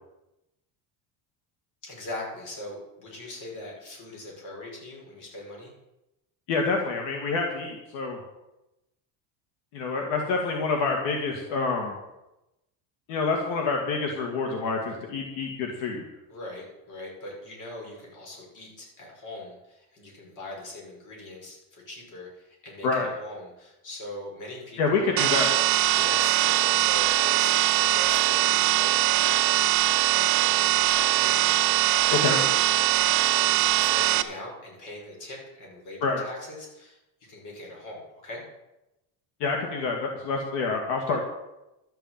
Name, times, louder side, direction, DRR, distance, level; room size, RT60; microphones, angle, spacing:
voice 1, 1.8-5.7 16.3-25.1 25.9-29.4 29.6-38.4, left 1 dB, 40° left, -2 dB, 6.0 m, -41 dB
voice 2, 6.5-8.2 9.7-11.9 13.1-16.0 22.8-23.1 24.8-25.5 32.2-32.4 36.0-36.2 39.4-41.2, left 4 dB, 75° left, 2 dB, 2.3 m, -27 dB
sound 1, 25.2-34.2, right 15 dB, 50° right, 1.0 m, -22 dB
12.5 x 7.0 x 8.9 m, 0.95 s
cardioid pair, 160°, 44 cm